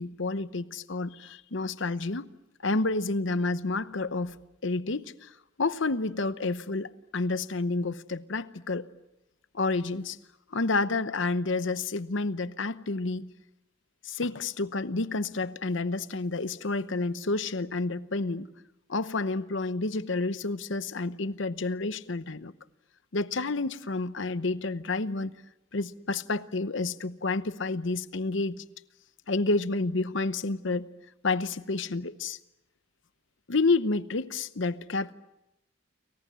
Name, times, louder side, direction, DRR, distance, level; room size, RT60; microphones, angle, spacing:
voice 1, 0.0-2.3 2.6-4.4 4.6-5.3 5.6-8.9 9.5-10.2 10.5-13.3 14.0-18.5 18.9-22.5 23.1-25.3 25.7-28.6 29.3-30.9 31.2-32.4 33.5-35.1, left 3 dB, 65° left, 0.9 m, -29 dB
29.5 x 24.0 x 7.5 m
head